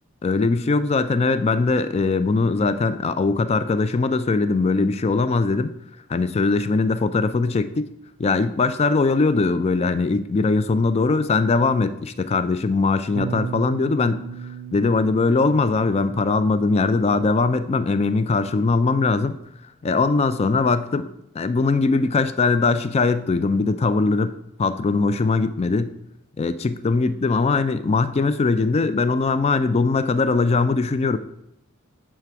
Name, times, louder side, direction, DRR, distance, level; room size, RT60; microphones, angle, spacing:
voice 1, 0.2-5.7 6.1-7.9 8.2-14.2 14.7-19.4 19.8-21.1 21.3-24.3 24.6-25.9 26.4-31.2, left 3 dB, 30° left, 12 dB, 0.4 m, -21 dB
Bass guitar, 13.2-19.4, right 6 dB, 50° right, 0.4 m, -37 dB
7.5 x 3.3 x 5.7 m, 0.82 s
head